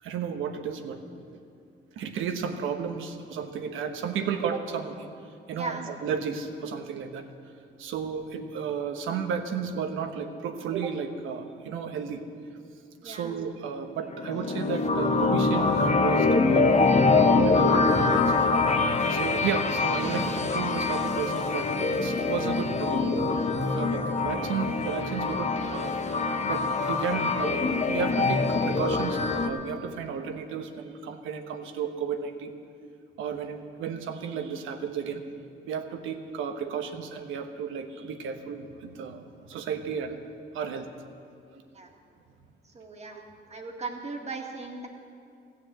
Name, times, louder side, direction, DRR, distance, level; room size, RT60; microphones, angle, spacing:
voice 1, 0.0-1.0 2.0-5.1 5.5-7.3 7.8-12.2 13.0-18.5 19.1-23.1 23.7-25.9 26.5-32.5 33.2-35.2 35.6-40.2 40.5-40.9 41.5-41.6, right 6 dB, 85° right, 7 dB, 1.1 m, -33 dB
voice 2, 5.6-5.9 13.0-13.3 41.7-41.9 42.7-43.2 43.5-44.9, right 3 dB, 35° right, 2 dB, 1.9 m, -37 dB
sound 1, 14.1-29.5, left 3 dB, 35° left, 0.9 m, -24 dB
15.5 x 7.1 x 7.9 m, 2.4 s
cardioid pair, 90°, 20 cm